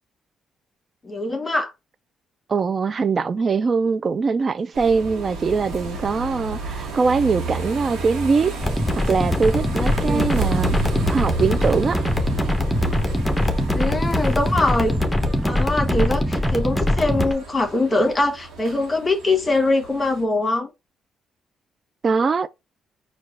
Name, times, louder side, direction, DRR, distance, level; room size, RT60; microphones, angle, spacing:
voice 1, 1.0-1.7 10.0-10.3 13.7-14.9 15.5-20.7, left 2 dB, 25° left, 1.3 m, -22 dB
voice 2, 2.5-8.5 8.9-10.8 11.1-12.0 22.0-22.5, right 5 dB, 40° right, 0.3 m, -22 dB
sound 1, 4.7-20.2, right 4 dB, 80° right, 1.0 m, -32 dB
sound 2, 8.6-17.3, left 1 dB, 5° left, 0.9 m, -22 dB
4.6 x 2.3 x 4.6 m
cardioid pair, 90°, 0 cm